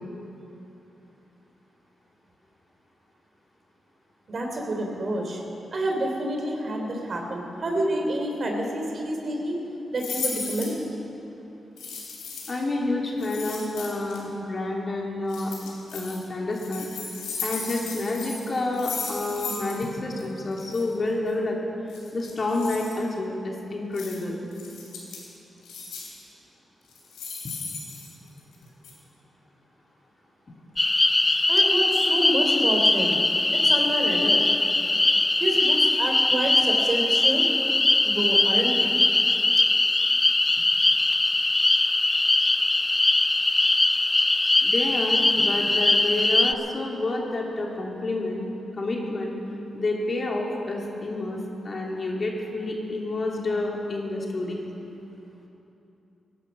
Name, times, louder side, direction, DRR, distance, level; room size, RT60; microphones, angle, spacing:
voice 1, 4.3-5.4 5.7-9.6 9.9-10.7 31.5-33.2 33.5-34.4 35.4-37.5 38.0-38.9, right 1 dB, 55° right, 1 dB, 3.3 m, -28 dB
sound 1, 10.0-10.8 11.8-12.6 13.2-14.2 15.3-16.2 16.5-19.9 20.1-20.2 20.5-20.8 21.9-22.9 23.9-24.2 24.5-25.3 25.6-26.2 26.9-28.5 28.8-28.9, left 5 dB, 90° left, 3.2 m, -36 dB
voice 2, 12.5-15.5 15.9-16.9 17.4-21.6 22.1-24.5 44.6-48.4 48.7-49.3 49.7-54.6, left 2 dB, 50° left, -1 dB, 3.1 m, -29 dB
sound 2, 30.8-46.5, left 2 dB, 25° left, 0.6 m, -21 dB
18.0 x 11.0 x 6.2 m, 2.9 s
supercardioid pair, 45°, 0 cm